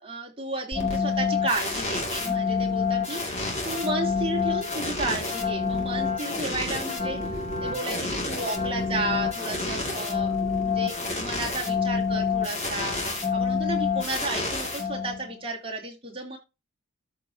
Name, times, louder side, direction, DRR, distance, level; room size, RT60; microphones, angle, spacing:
voice 1, 0.0-3.4 3.6-10.3 10.6-13.0 13.3-16.4, right 2 dB, 25° right, -2 dB, 2.8 m, -33 dB
sound 1, 0.7-15.4, left 4 dB, 30° left, 2.2 m, -28 dB
13.5 x 4.7 x 2.7 m, 0.26 s
head